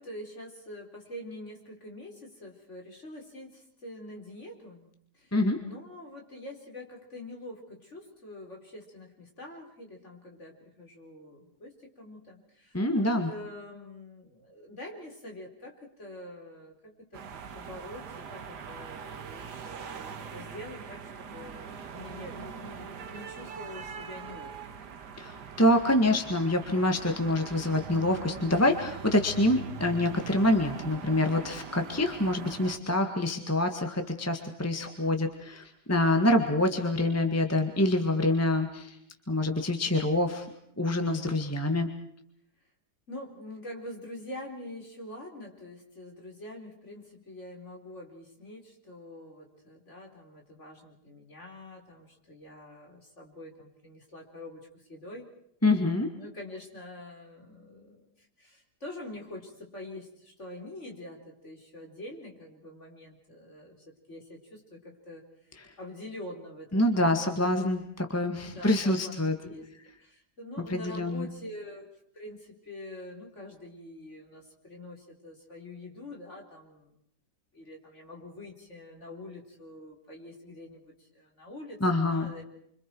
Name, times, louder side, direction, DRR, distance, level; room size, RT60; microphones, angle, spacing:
voice 1, 0.0-4.9 5.1-24.5 43.1-55.3 56.1-65.2 65.8-67.7 68.4-69.1 69.4-69.6 70.0-71.9 72.1-76.9 77.5-82.4, left 1 dB, 45° left, 1 dB, 4.8 m, -45 dB
voice 2, 12.7-13.3 25.2-39.0 39.3-40.5 40.8-41.9 55.6-56.1 65.6-65.7 66.7-69.3 70.7-71.3 81.8-82.3, left 1 dB, 10° left, 5 dB, 1.7 m, -26 dB
sound 1, 17.1-32.8, right 6 dB, 90° right, 2.0 m, -42 dB
29.5 x 25.5 x 4.7 m, 0.71 s
omnidirectional pair, 1.7 m